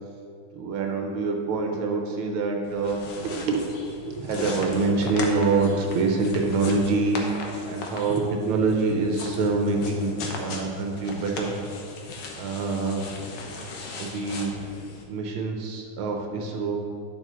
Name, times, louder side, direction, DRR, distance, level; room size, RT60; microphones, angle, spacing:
voice 1, 0.5-11.6 12.4-13.1 14.0-14.5 15.1-16.8, right 3 dB, 85° right, 2 dB, 1.6 m, -26 dB
sound 1, 2.6-15.0, left 3 dB, 70° left, 1.6 m, -38 dB
10.0 x 6.6 x 3.0 m, 2.4 s
omnidirectional pair, 2.3 m